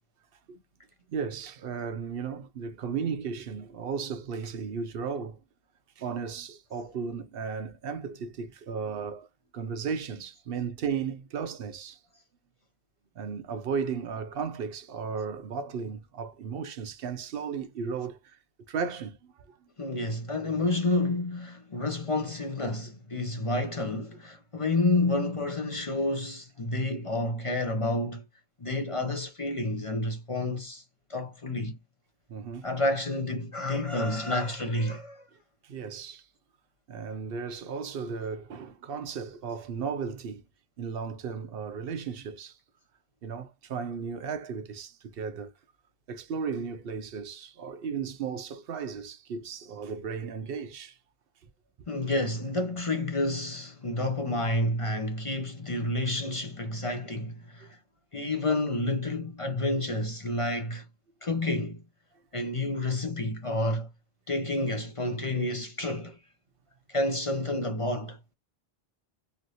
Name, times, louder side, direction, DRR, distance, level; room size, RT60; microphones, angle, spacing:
voice 1, 1.1-5.4 6.0-9.3 9.5-12.0 13.2-18.4 18.7-19.7 32.3-32.7 35.6-36.3 36.9-40.4 40.8-42.6 43.2-45.5 46.1-51.0 57.6-57.8, right 6 dB, 70° right, 0.8 m, -35 dB
voice 2, 19.8-28.2 28.6-30.8 31.1-31.8 32.6-35.2 51.9-57.8 58.1-60.8 61.2-61.8 62.3-63.9 64.3-66.2 66.9-68.2, left 2 dB, 40° left, 0.6 m, -29 dB
3.1 x 2.5 x 2.6 m
omnidirectional pair, 1.0 m